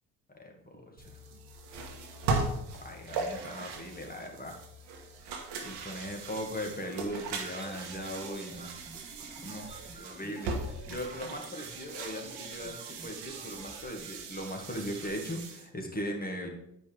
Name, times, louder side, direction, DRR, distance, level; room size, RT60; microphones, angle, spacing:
voice 1, 0.3-1.2 2.8-4.6 5.6-8.7 9.4-9.7 10.0-16.5, equal, 20° left, 2 dB, 1.9 m, -39 dB
sound 1, 1.0-15.7, right 3 dB, 70° right, 1.3 m, -39 dB
sound 2, 7.3-14.1, right 2 dB, 15° right, 1.1 m, -50 dB
9.0 x 5.3 x 3.4 m, 0.79 s
hypercardioid pair, 60°, 42 cm